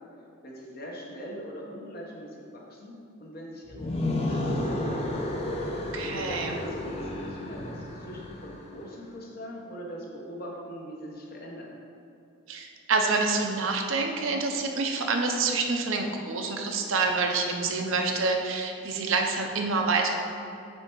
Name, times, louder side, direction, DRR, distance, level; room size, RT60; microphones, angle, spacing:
voice 1, 0.4-2.9 3.2-5.0 6.3-11.8, equal, 45° left, -2 dB, 1.0 m, -41 dB
sound 1, 3.7-8.7, left 1 dB, 30° left, 0.6 m, -32 dB
voice 2, 5.9-6.6 12.5-20.2, right 3 dB, 70° right, 3 dB, 0.6 m, -27 dB
7.7 x 3.4 x 4.6 m, 2.7 s
head